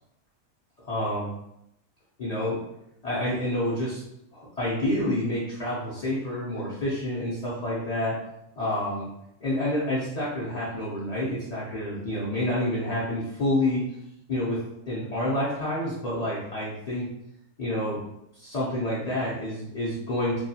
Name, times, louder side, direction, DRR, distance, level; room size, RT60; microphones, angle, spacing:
voice 1, 0.9-1.3 2.2-2.6 3.0-4.0 4.3-8.2 8.6-9.1 9.4-13.8 14.3-17.1 17.6-18.0 18.4-20.4, left 1 dB, 50° left, -8 dB, 0.4 m, -28 dB
2.3 x 2.2 x 2.7 m, 0.82 s
omnidirectional pair, 1.3 m